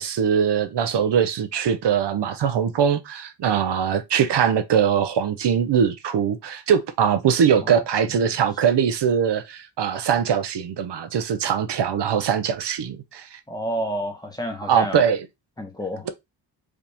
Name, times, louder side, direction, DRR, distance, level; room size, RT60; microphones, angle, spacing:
voice 1, 0.0-13.4 14.7-15.2, right 8 dB, 70° right, 0.8 m, -22 dB
voice 2, 13.5-15.1 15.6-16.1, equal, 10° left, 1.2 m, -29 dB
5.0 x 3.0 x 3.4 m
wide cardioid pair, 130°, 44 cm